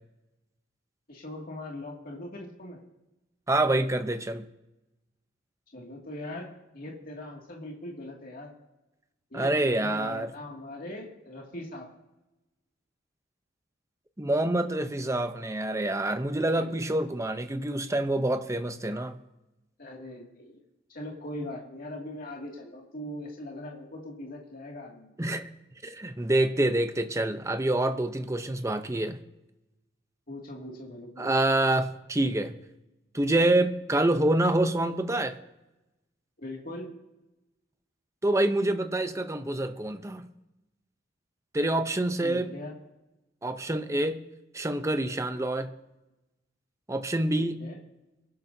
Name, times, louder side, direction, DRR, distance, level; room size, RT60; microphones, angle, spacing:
voice 1, 1.1-2.8 5.7-6.5 6.7-8.5 9.3-11.9 16.6-17.0 19.8-20.6 20.9-25.1 30.3-31.3 36.4-36.9 42.2-42.7 47.4-47.8, left 1 dB, 50° left, -2 dB, 2.4 m, -40 dB
voice 2, 3.5-4.5 9.3-10.3 14.2-19.2 25.2-25.5 25.8-29.2 31.2-32.5 33.1-35.4 38.2-40.3 41.5-42.5 43.4-44.2 44.5-45.7 46.9-47.6, right 1 dB, 15° right, 8 dB, 0.7 m, -26 dB
24.0 x 12.0 x 2.8 m, 0.97 s
head